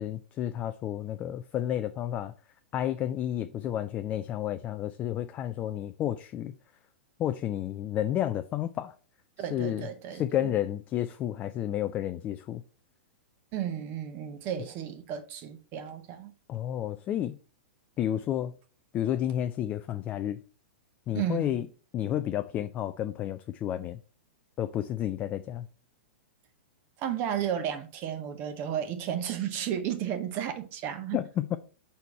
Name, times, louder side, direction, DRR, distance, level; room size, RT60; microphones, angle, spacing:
voice 1, 0.0-2.3 2.7-6.5 7.2-8.9 9.5-12.6 16.5-17.4 18.0-18.5 18.9-20.4 21.1-21.7 21.9-24.0 24.6-25.7 31.1-31.6, left 11 dB, 25° left, 0.3 m, -31 dB
voice 2, 9.4-10.5 13.5-16.3 21.1-21.6 27.0-31.2, right 9 dB, 35° right, 0.8 m, -33 dB
4.5 x 4.2 x 5.4 m
figure-of-eight pair, 105°, 6 cm